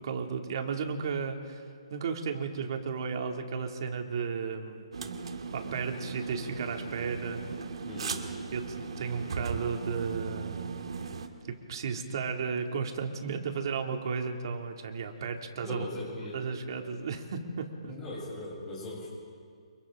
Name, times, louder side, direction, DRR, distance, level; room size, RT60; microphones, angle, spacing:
voice 1, 0.0-1.6 1.9-4.8 5.5-7.4 8.5-10.7 11.4-15.9 16.3-17.9, right 5 dB, 45° right, 3 dB, 2.5 m, -34 dB
sound 1, 4.9-11.3, right 5 dB, 60° right, 2.0 m, -37 dB
voice 2, 7.9-8.2 15.6-16.4 17.9-19.1, left 2 dB, 10° left, -7 dB, 7.7 m, -39 dB
29.5 x 29.0 x 3.8 m, 2.2 s
hypercardioid pair, 165°, 3 cm